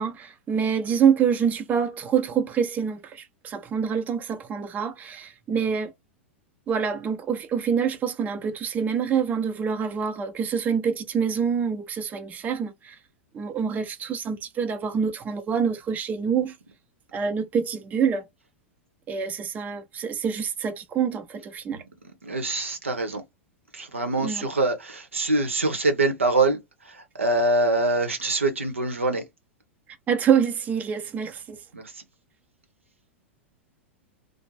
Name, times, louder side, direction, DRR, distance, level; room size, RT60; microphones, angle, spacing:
voice 1, 0.0-5.9 6.7-13.0 13.3-16.5 17.1-18.3 19.1-21.8 24.2-24.5 30.1-31.6, right 7 dB, 25° right, 0.6 m, -26 dB
voice 2, 22.0-23.2 23.7-26.6 26.9-29.2 31.7-32.0, right 2 dB, 85° right, 0.8 m, -24 dB
2.5 x 2.0 x 3.1 m
figure-of-eight pair, 95°, 7 cm